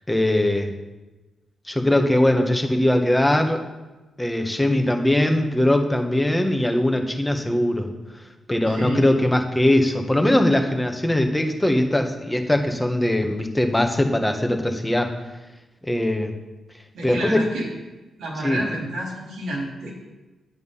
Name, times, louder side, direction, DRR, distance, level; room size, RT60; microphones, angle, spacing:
voice 1, 0.1-0.7 1.7-3.6 4.2-7.9 8.5-15.1 15.8-16.3 17.0-17.4 18.4-18.6, left 1 dB, 10° left, 4 dB, 1.3 m, -21 dB
voice 2, 8.7-9.1 16.9-17.7 18.2-19.9, right 1 dB, 90° right, -2 dB, 3.8 m, -30 dB
9.4 x 9.4 x 5.6 m, 1.1 s
cardioid pair, 110°, 0 cm